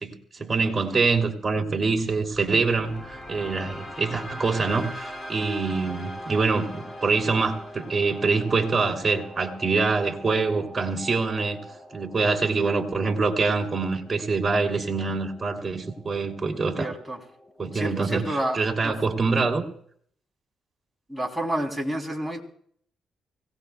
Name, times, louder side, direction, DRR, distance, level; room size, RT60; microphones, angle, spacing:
voice 1, 0.0-11.6 11.9-16.9 17.6-19.6, right 4 dB, 25° right, 2 dB, 2.9 m, -25 dB
sound 1, 2.0-18.0, equal, 25° left, 2.2 m, -42 dB
voice 2, 16.8-17.2 17.7-19.0 21.1-22.4, right 1 dB, ahead, 1 dB, 3.3 m, -29 dB
24.5 x 17.5 x 2.3 m, 0.62 s
cardioid pair, 90°, 0 cm